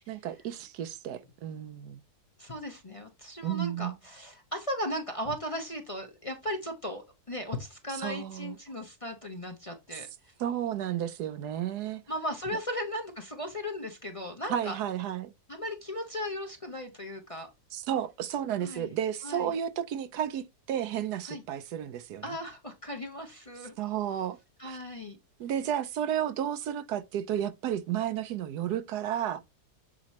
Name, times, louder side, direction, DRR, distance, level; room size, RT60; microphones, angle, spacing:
voice 1, 0.1-2.0 3.4-3.9 8.0-8.5 10.4-12.0 14.5-15.3 17.7-22.2 23.8-24.4 24.6-24.8 25.4-29.4, right 10 dB, 80° right, 1.2 m, -32 dB
voice 2, 2.4-10.3 12.1-14.8 15.5-17.5 18.6-18.9 19.2-19.6 21.2-21.4 22.2-23.7 24.6-25.2, equal, 25° left, 0.9 m, -37 dB
7.7 x 3.0 x 4.1 m
omnidirectional pair, 1.8 m